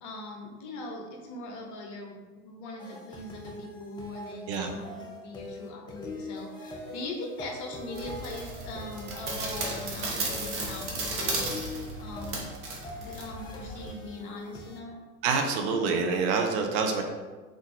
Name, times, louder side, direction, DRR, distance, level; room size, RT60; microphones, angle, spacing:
voice 1, 0.0-11.5 12.0-12.4 13.0-15.0, left 2 dB, 40° left, 1 dB, 1.0 m, -41 dB
sound 1, 2.8-14.8, left 1 dB, 10° left, 0.5 m, -42 dB
sound 2, 7.9-13.9, right 2 dB, 65° right, 1.3 m, -35 dB
voice 2, 15.2-17.0, right 4 dB, 50° right, 3 dB, 0.7 m, -26 dB
3.9 x 3.8 x 3.4 m, 1.3 s
figure-of-eight pair, 85°, 46 cm